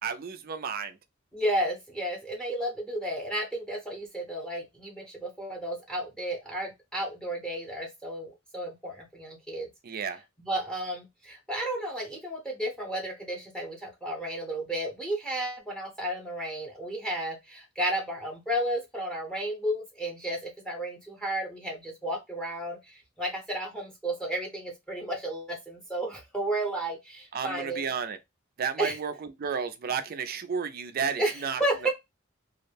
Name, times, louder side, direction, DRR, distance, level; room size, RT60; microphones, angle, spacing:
voice 1, 0.0-1.0 9.8-10.2 27.3-28.2 28.6-31.6, right 6 dB, 45° right, 0.4 m, -32 dB
voice 2, 1.3-10.0 10.4-27.9 28.8-29.0 31.2-31.9, right 1 dB, 5° left, 0.8 m, -33 dB
2.4 x 2.0 x 3.2 m
head